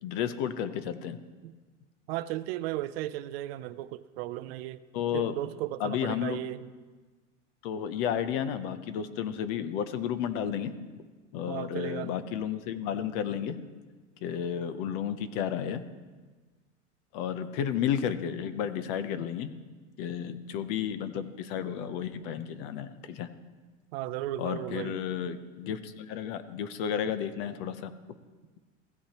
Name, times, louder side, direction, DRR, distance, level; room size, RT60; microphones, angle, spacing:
voice 1, 0.0-1.2 4.9-5.4 5.8-6.4 7.6-10.7 11.3-13.6 14.2-15.8 17.1-19.5 20.0-23.3 24.4-27.9, left 8 dB, 50° left, 12 dB, 0.8 m, -32 dB
voice 2, 2.1-4.8 5.1-6.7 11.5-12.1 23.9-25.0, right 14 dB, 55° right, 14 dB, 0.5 m, -35 dB
16.0 x 8.4 x 3.0 m, 1.3 s
supercardioid pair, 135°, 36 cm